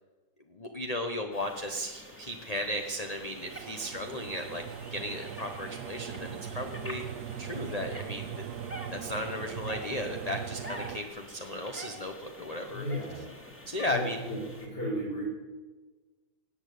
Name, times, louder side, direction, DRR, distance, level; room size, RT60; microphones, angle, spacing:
voice 1, 0.5-4.6 4.9-7.0 7.4-8.4 8.9-12.8 13.7-14.2, left 1 dB, 25° left, 3 dB, 1.0 m, -35 dB
sound 1, 1.3-14.7, equal, 5° left, 2.1 m, -47 dB
sound 2, 3.2-11.0, right 9 dB, 75° right, 1.2 m, -40 dB
voice 2, 12.7-13.3 13.9-15.3, equal, 75° left, -4 dB, 5.3 m, -34 dB
18.0 x 8.9 x 8.3 m, 1.3 s
omnidirectional pair, 1.8 m